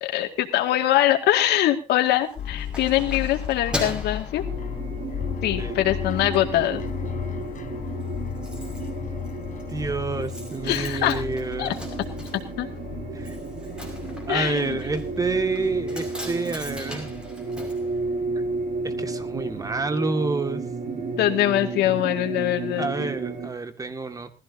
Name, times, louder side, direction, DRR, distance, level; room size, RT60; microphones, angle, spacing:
voice 1, 0.0-4.4 5.4-6.8 10.6-11.2 11.6-11.7 12.6-12.7 14.3-14.8 21.2-23.1, left 13 dB, 80° left, 5 dB, 2.2 m, -23 dB
Keys jangling, 2.1-5.2 5.7-5.9 6.3-7.0 7.2-7.3 7.6-7.7 7.8-18.7 18.9-19.0, left 1 dB, 5° right, 5.7 m, -39 dB
sound 1, 2.4-19.9, left 10 dB, 50° left, 1.2 m, -35 dB
sound 2, 4.4-23.5, right 4 dB, 50° right, 5.7 m, -33 dB
voice 2, 9.7-11.7 13.1-13.4 14.3-17.1 18.8-20.6 20.9-21.0 22.8-24.3, right 3 dB, 20° right, 9 dB, 2.0 m, -28 dB
20.0 x 15.0 x 2.8 m, 0.30 s
cardioid pair, 110°, 17 cm